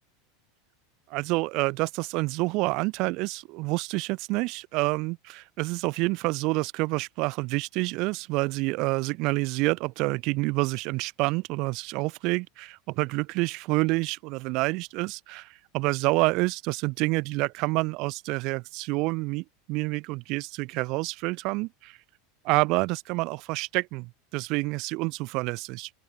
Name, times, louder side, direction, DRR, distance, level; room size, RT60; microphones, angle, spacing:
voice 1, 1.1-22.0 22.4-25.9, right 24 dB, 55° right, 1.2 m, -28 dB
open air
supercardioid pair, 125°, 0 cm